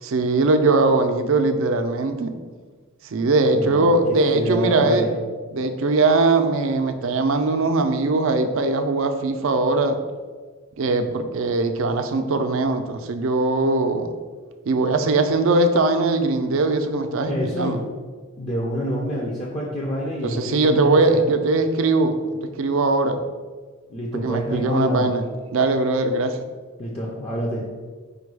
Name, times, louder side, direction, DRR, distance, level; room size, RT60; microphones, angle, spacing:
voice 1, 0.0-2.3 3.0-5.1 5.5-10.0 10.8-14.1 14.7-17.8 20.2-23.2 24.1-25.2 25.5-26.4, right 3 dB, 65° right, 7 dB, 0.4 m, -20 dB
voice 2, 3.5-4.0 4.3-5.2 17.3-17.8 18.4-21.2 23.9-25.1 26.8-27.7, equal, 30° left, -4 dB, 0.5 m, -27 dB
5.1 x 2.3 x 4.6 m, 1.4 s
head